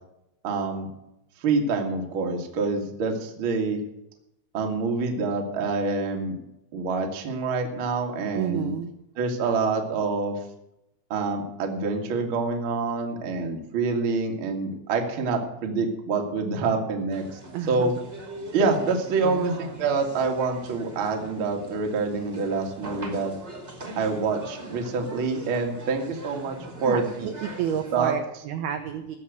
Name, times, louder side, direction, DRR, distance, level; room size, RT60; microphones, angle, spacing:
voice 1, 0.4-0.9 1.4-3.8 4.5-6.3 6.7-8.7 9.2-10.4 11.1-17.4 17.7-17.9 18.5-23.3 23.9-27.3 27.9-28.1, right 4 dB, 60° right, 2 dB, 1.3 m, -26 dB
voice 2, 8.3-8.9 17.5-17.9 19.2-19.7 26.8-29.2, right 9 dB, 85° right, 6 dB, 2.2 m, -30 dB
sound 1, 17.1-28.0, right 1 dB, 25° right, 1.3 m, -42 dB
15.5 x 7.3 x 8.1 m, 0.86 s
omnidirectional pair, 5.8 m